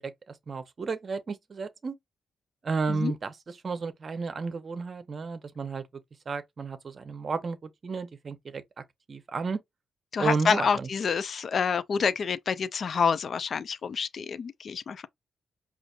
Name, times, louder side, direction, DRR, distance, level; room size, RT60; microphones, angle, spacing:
voice 1, 0.0-1.9 2.6-5.8 6.3-9.6 10.2-10.9, right 4 dB, 45° right, 0.7 m, -33 dB
voice 2, 10.1-15.1, left 6 dB, 55° left, 0.4 m, -28 dB
5.0 x 2.5 x 2.4 m
cardioid pair, 75°, 0 cm